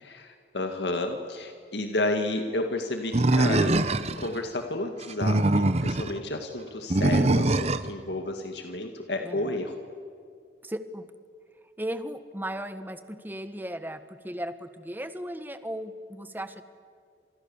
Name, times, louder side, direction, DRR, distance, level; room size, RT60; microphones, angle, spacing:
voice 1, 0.0-9.8, left 2 dB, 75° left, 5 dB, 2.1 m, -31 dB
Animal, 3.1-4.3 5.0-6.1 6.9-7.9, right 2 dB, 35° right, 1.0 m, -23 dB
voice 2, 9.2-9.6 10.6-11.1 11.8-16.6, right 1 dB, 10° right, 10 dB, 1.4 m, -36 dB
29.5 x 27.5 x 7.2 m, 2.3 s
head